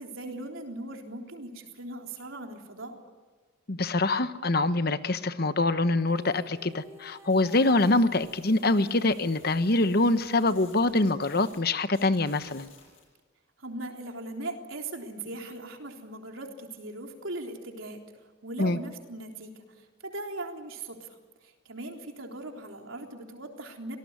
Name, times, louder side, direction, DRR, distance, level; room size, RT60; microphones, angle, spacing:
voice 1, 0.0-3.0 13.6-18.0 18.4-21.1 21.4-24.0, right 2 dB, 90° right, 2 dB, 3.7 m, -39 dB
voice 2, 3.7-12.7 18.6-18.8, left 2 dB, 50° left, 11 dB, 1.1 m, -25 dB
sound 1, 6.0-10.3, right 1 dB, 15° right, 2.3 m, -52 dB
sound 2, 7.3-11.6 11.9-13.0, left 5 dB, 80° left, 7.4 m, -55 dB
27.0 x 18.5 x 9.6 m, 1.4 s
head